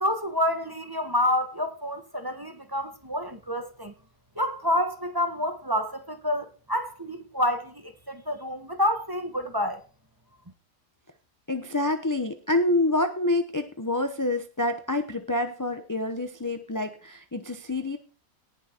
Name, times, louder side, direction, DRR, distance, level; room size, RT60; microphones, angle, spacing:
voice 1, 0.0-3.9 4.4-9.8, left 1 dB, 15° right, 1.1 m, -28 dB
voice 2, 11.5-18.0, left 2 dB, 15° left, 0.7 m, -27 dB
18.5 x 6.2 x 4.5 m
omnidirectional pair, 1.7 m